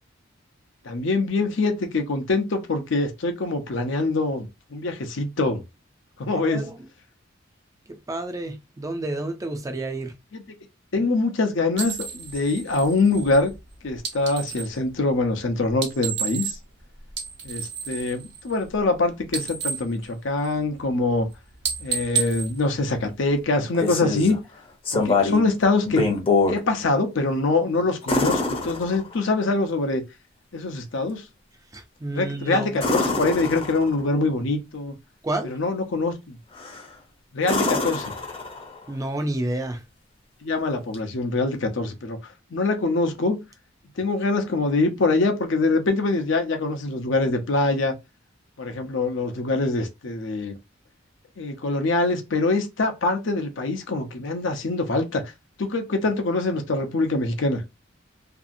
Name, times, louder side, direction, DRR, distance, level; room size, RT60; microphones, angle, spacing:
voice 1, 0.8-5.6 6.2-6.7 10.3-10.4 10.9-13.5 13.8-16.6 17.4-21.3 21.8-24.4 24.9-26.2 26.5-30.0 30.5-31.2 32.1-34.9 35.4-36.3 37.3-38.1 40.4-42.2 42.5-43.4 44.0-47.9 48.6-50.5 51.4-55.2 55.6-57.6, left 3 dB, 70° left, 0.6 m, -24 dB
voice 2, 6.3-6.9 8.1-10.1 31.7-33.0 35.2-35.5 38.9-39.8, right 2 dB, 15° right, 0.4 m, -30 dB
sound 1, 11.7-14.8 15.7-16.8 17.1-19.0 19.2-20.8 21.1-21.3 21.6-23.4, right 6 dB, 65° right, 0.8 m, -32 dB
sound 2, 23.5-24.4 24.9-25.5 25.9-26.6 28.1-29.3 32.8-34.1 36.5-36.9 37.4-38.8 40.9-41.0, left 3 dB, 30° left, 0.7 m, -25 dB
2.7 x 2.4 x 2.6 m
head